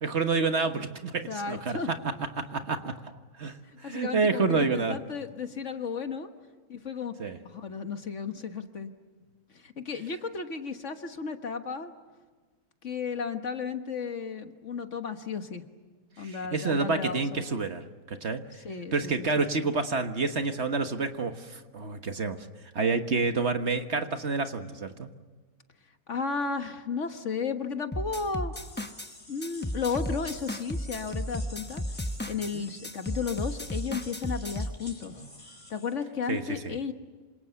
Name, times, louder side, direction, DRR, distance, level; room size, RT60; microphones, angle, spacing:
voice 1, 0.0-3.1 3.4-5.0 7.2-7.4 16.2-18.4 18.9-22.4 22.7-25.1 32.5-32.7 36.3-36.8, right 4 dB, 50° right, 7 dB, 1.6 m, -29 dB
voice 2, 1.3-1.9 3.8-6.3 6.7-7.1 7.5-8.9 9.6-11.9 12.8-15.6 16.2-17.4 18.6-19.3 19.5-19.7 26.1-28.5 29.3-31.8 32.3-35.1 35.7-36.9, left 5 dB, 55° left, 7 dB, 1.7 m, -34 dB
sound 1, 27.9-29.1 29.4-32.5 32.8-34.8, left 1 dB, 10° left, 0.7 m, -34 dB
sound 2, 28.5-35.9, left 1 dB, 25° left, 4.5 m, -49 dB
27.0 x 26.5 x 7.1 m, 1.4 s
omnidirectional pair, 1.5 m